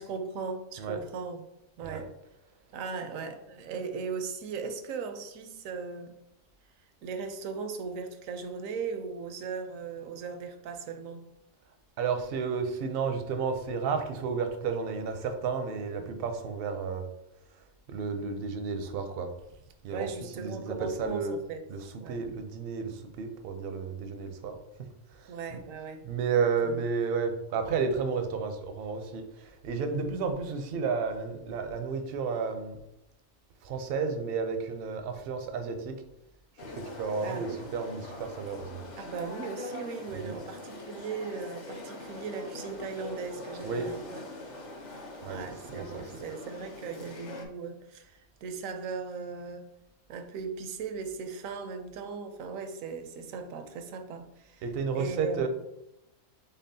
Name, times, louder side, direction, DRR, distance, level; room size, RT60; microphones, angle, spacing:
voice 1, 0.0-1.4 1.8-2.1 2.7-6.1 7.0-11.2 19.9-21.6 22.0-22.3 25.3-26.0 26.6-26.8 37.2-37.6 39.0-44.2 45.3-49.7 50.1-54.6 54.9-55.5, right 5 dB, 85° right, 7 dB, 1.0 m, -38 dB
voice 2, 12.0-17.1 17.9-19.3 19.8-21.4 21.7-24.6 25.1-25.6 26.0-32.8 33.6-36.0 37.0-38.8 40.1-40.4 43.6-43.9 45.2-45.4 45.7-46.2 54.6-55.5, right 5 dB, 60° right, 7 dB, 0.6 m, -32 dB
sound 1, 36.6-47.5, left 2 dB, 50° left, 0.6 m, -43 dB
4.2 x 3.4 x 2.7 m, 0.85 s
omnidirectional pair, 1.4 m